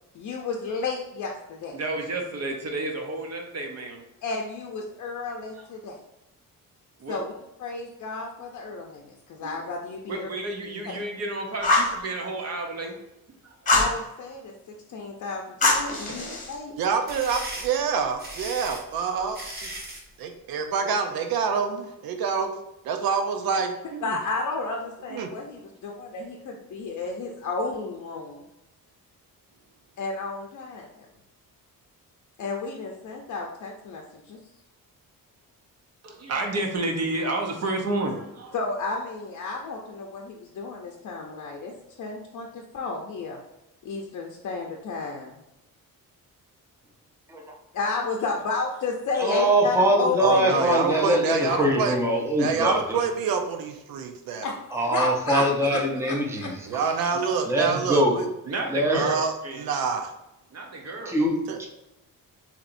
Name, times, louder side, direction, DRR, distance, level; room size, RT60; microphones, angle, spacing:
voice 1, 0.1-1.7 4.2-6.0 7.1-7.3 7.6-10.3 10.8-11.0 13.7-14.5 14.9-16.7 24.0-28.4 30.0-31.1 32.4-34.4 38.5-41.7 42.0-43.4 43.8-45.4 47.7-50.6 50.9-51.2 51.5-51.6 54.4-54.6 54.9-56.5, left 4 dB, 55° left, 1 dB, 0.6 m, -32 dB
voice 2, 1.7-4.0 5.6-5.7 7.0-7.2 9.4-9.6 10.1-12.9 13.4-13.5 16.1-16.3 36.0-38.5 58.5-59.2 59.4-59.7 60.5-61.1, right 2 dB, 45° right, 2 dB, 0.8 m, -31 dB
Fire, 11.6-12.0 13.7-14.0 15.6-16.5, left 2 dB, 20° left, 1.0 m, -22 dB
sound 1, 16.8-20.1, right 1 dB, 25° right, 1.1 m, -37 dB
voice 3, 16.8-19.7 20.2-22.5 22.8-24.2 25.1-25.3 50.2-52.0 52.4-54.5 56.7-58.2 58.9-60.1 61.5-61.6, right 6 dB, 80° right, 5 dB, 0.6 m, -27 dB
voice 4, 49.2-53.0 54.7-56.9 57.5-58.2 58.7-59.1 61.0-61.7, right 1 dB, 10° right, 0 dB, 0.6 m, -23 dB
6.9 x 3.0 x 2.6 m, 0.93 s
wide cardioid pair, 155°, 35 cm